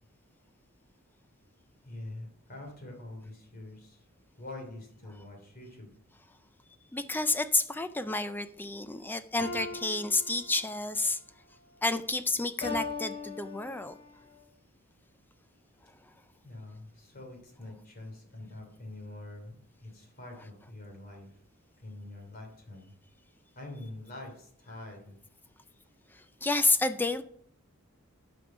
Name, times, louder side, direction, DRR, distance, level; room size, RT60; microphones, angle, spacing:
voice 1, 1.8-4.0 4.4-5.9 16.4-21.3 21.8-22.9 23.5-25.1, left 2 dB, 45° left, 2 dB, 3.0 m, -45 dB
voice 2, 6.9-11.2 11.8-13.9 26.4-27.2, left 3 dB, 10° left, 11 dB, 0.4 m, -30 dB
sound 1, 9.4-10.9 12.6-14.1, left 3 dB, 25° left, 4.5 m, -39 dB
11.5 x 5.3 x 5.1 m, 0.64 s
head